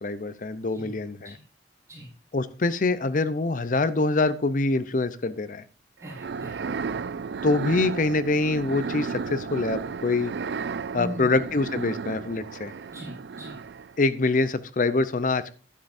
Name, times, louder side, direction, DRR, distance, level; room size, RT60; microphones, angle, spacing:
voice 1, 0.0-1.4 2.3-5.6 7.4-10.3 10.9-12.7 14.0-15.5, left 3 dB, 50° left, 14 dB, 0.6 m, -25 dB
voice 2, 6.0-6.6 10.9-11.4 12.9-13.6, right 1 dB, 20° right, -5 dB, 5.1 m, -39 dB
sound 1, 6.0-14.0, right 5 dB, 80° right, 0.4 m, -34 dB
11.5 x 11.0 x 2.6 m, 0.36 s
head